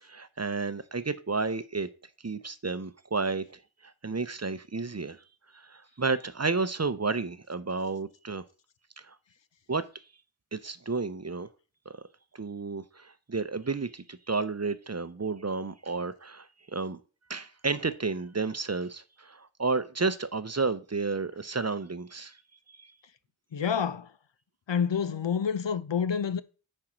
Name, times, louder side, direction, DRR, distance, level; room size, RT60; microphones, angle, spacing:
voice 1, 0.0-1.9 2.2-3.5 3.8-5.2 5.5-8.4 9.1-9.2 9.7-9.8 10.5-11.5 12.3-17.0 17.3-22.4 22.7-22.9, right 4 dB, 35° right, 0.6 m, -31 dB
voice 2, 23.5-24.1 24.7-26.4, left 7 dB, 70° left, 0.7 m, -28 dB
10.0 x 4.5 x 5.0 m
wide cardioid pair, 50°, 46 cm